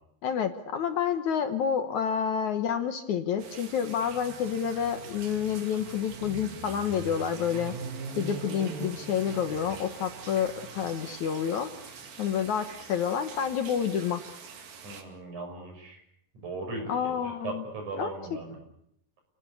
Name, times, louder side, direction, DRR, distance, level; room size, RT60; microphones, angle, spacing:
voice 1, 0.2-7.8 8.2-11.7 12.2-14.2 16.9-17.6 18.0-18.1, left 8 dB, 65° left, 8 dB, 2.3 m, -29 dB
sound 1, 3.4-15.0, right 5 dB, 75° right, 4.2 m, -42 dB
voice 2, 14.8-16.0 16.4-18.6, right 3 dB, 55° right, 4 dB, 7.3 m, -38 dB
29.5 x 19.0 x 8.4 m, 0.75 s
omnidirectional pair, 4.1 m